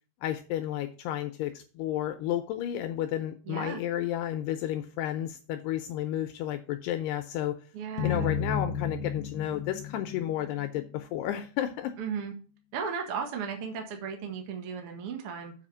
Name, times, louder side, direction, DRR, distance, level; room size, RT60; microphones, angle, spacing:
voice 1, 0.2-7.6 8.0-11.9, left 12 dB, 80° left, 8 dB, 2.4 m, -32 dB
voice 2, 3.4-3.8 7.7-8.4 12.0-12.3 12.7-15.5, right 6 dB, 65° right, 3 dB, 1.4 m, -35 dB
sound 1, 8.0-11.2, left 7 dB, 55° left, 1.7 m, -33 dB
7.4 x 4.9 x 7.3 m, 0.38 s
omnidirectional pair, 5.2 m